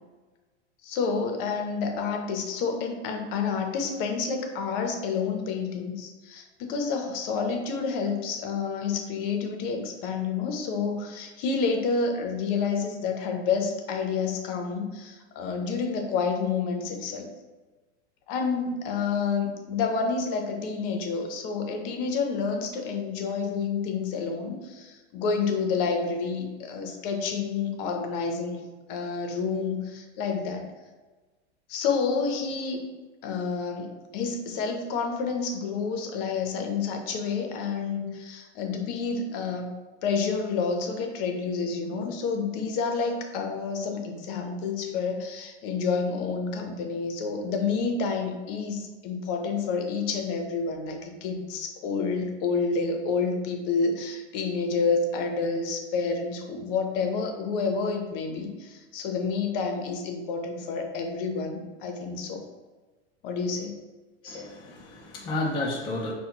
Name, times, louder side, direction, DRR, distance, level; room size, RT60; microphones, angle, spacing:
voice 1, 0.8-17.3 18.3-28.6 28.9-30.6 31.7-32.9 33.2-39.7 40.0-62.5 63.2-63.7, left 5 dB, 50° left, 4 dB, 0.8 m, -29 dB
voice 2, 64.2-66.1, left 2 dB, 15° left, -3 dB, 0.4 m, -31 dB
5.6 x 2.3 x 2.8 m, 1.3 s
hypercardioid pair, 125°, 35 cm